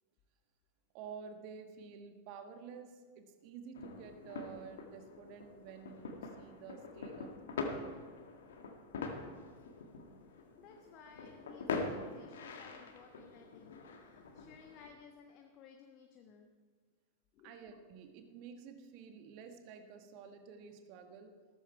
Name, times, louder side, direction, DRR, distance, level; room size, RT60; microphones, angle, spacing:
voice 1, 0.9-8.0 17.4-21.4, right 6 dB, 45° right, 6 dB, 1.5 m, -51 dB
sound 1, 3.7-14.9, left 4 dB, 60° left, 1.7 m, -44 dB
voice 2, 10.3-16.5 17.3-17.6, left 6 dB, 35° left, 3 dB, 1.3 m, -58 dB
15.5 x 13.5 x 4.7 m, 1.5 s
figure-of-eight pair, 90°, 0 cm